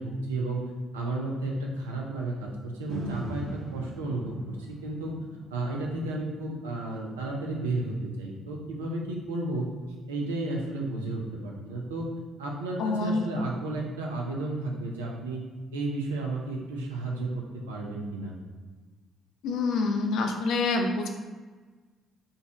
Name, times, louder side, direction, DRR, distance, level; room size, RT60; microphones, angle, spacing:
voice 1, 0.0-5.1 5.5-9.7 10.1-12.1 12.4-15.4 15.7-18.3, right 2 dB, 80° right, -1 dB, 0.5 m, -33 dB
sound 1, 2.9-11.0 11.5-11.6, right 1 dB, 60° right, 0.9 m, -43 dB
voice 2, 12.8-13.2 19.4-21.1, left 3 dB, 60° left, 4 dB, 0.4 m, -26 dB
3.9 x 2.3 x 3.6 m, 1.4 s
figure-of-eight pair, 45°, 0 cm